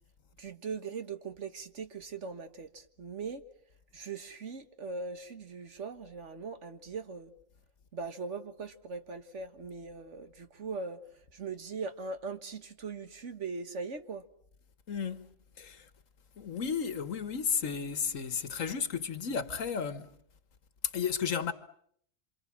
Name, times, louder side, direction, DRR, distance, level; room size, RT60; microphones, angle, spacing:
voice 1, 0.4-3.4 3.9-7.3 7.9-11.0 11.3-14.2, right 4 dB, 65° right, 1.8 m, -40 dB
voice 2, 14.9-15.9 16.4-20.2 20.8-21.5, left 6 dB, 75° left, 1.7 m, -33 dB
27.5 x 26.5 x 7.5 m
omnidirectional pair, 1.4 m